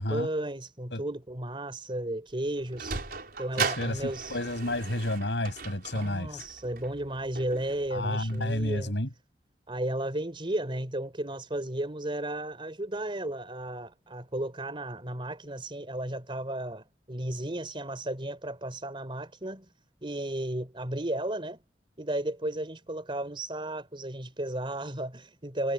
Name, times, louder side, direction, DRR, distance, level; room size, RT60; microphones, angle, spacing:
voice 1, 0.0-4.4 5.9-8.9 9.7-19.7 20.0-21.6 22.0-25.7, right 1 dB, 30° right, 4.2 m, -34 dB
Sliding door, 2.3-8.9, right 5 dB, 60° right, 5.6 m, -38 dB
voice 2, 3.5-6.4 7.9-9.1, left 1 dB, 90° left, 7.2 m, -31 dB
head